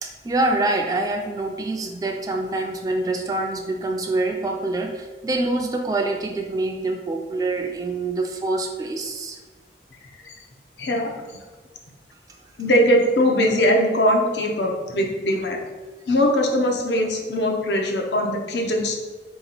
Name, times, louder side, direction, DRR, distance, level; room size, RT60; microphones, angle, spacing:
voice 1, 0.0-9.4, right 2 dB, 20° right, 3 dB, 0.3 m, -25 dB
voice 2, 10.8-11.2 12.6-15.6 16.1-19.0, equal, 85° left, 2 dB, 0.6 m, -21 dB
3.7 x 2.9 x 4.0 m, 1.3 s
head